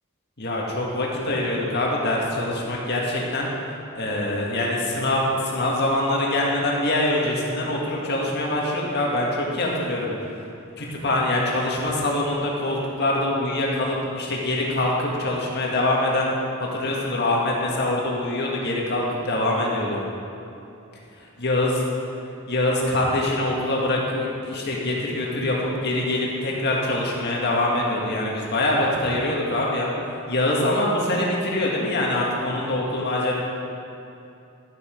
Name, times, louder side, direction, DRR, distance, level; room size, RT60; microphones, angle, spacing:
voice 1, 0.4-3.5 4.0-10.1 10.8-16.3 16.7-20.0 21.4-21.7 22.5-29.9 30.3-33.3, left 1 dB, 55° left, -3 dB, 1.8 m, -24 dB
12.0 x 7.5 x 5.1 m, 2.8 s
head